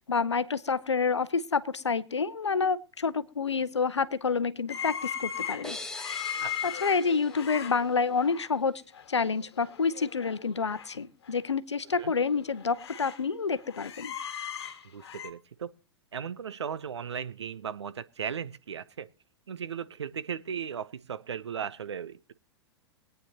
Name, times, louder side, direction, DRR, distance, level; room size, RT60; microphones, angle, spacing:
voice 1, 0.0-5.8 6.3-6.4 6.6-8.8 9.1-14.1, left 5 dB, 85° left, 0.7 m, -28 dB
sound 1, 4.7-8.5 8.9-9.2 9.4-10.9 11.2-11.3 11.9-13.2 13.5-15.3, left 8 dB, 65° left, 1.5 m, -38 dB
sound 2, 5.6-8.4, left 2 dB, 5° left, 1.3 m, -43 dB
voice 2, 6.4-6.7 12.0-12.1 14.8-15.7 16.1-19.1 19.5-22.3, right 7 dB, 75° right, 0.7 m, -37 dB
23.0 x 9.2 x 2.8 m
figure-of-eight pair, 100°, 14 cm